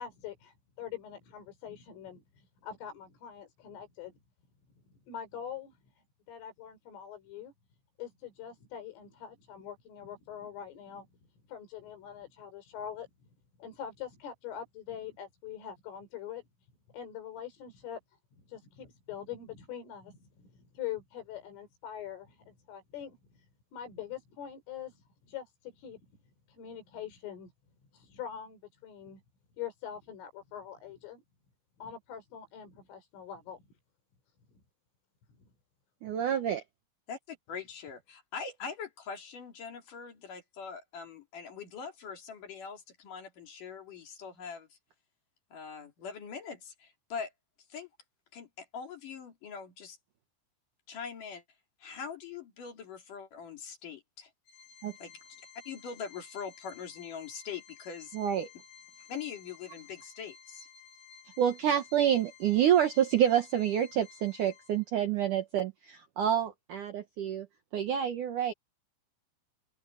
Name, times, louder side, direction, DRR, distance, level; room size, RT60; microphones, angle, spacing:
voice 1, 0.0-4.2 5.1-5.8 6.3-7.5 8.0-11.1 11.5-13.1 13.6-16.4 16.9-18.0 18.4-23.5 23.7-26.1 26.5-27.5 27.9-29.2 29.6-31.2 31.8-33.6 34.5-34.6, left 9 dB, 85° left, 7.4 m, -43 dB
voice 2, 36.0-36.6 54.8-54.9 58.1-58.5 61.4-67.5 67.7-68.5, right 10 dB, 80° right, 1.8 m, -28 dB
voice 3, 37.1-44.8 45.5-47.3 47.7-47.9 48.3-50.0 50.9-51.4 51.8-54.3 55.0-55.1 55.7-58.2 59.1-60.7, left 6 dB, 45° left, 4.0 m, -42 dB
Organ, 54.5-65.1, left 7 dB, 65° left, 8.0 m, -55 dB
open air
omnidirectional pair, 5.6 m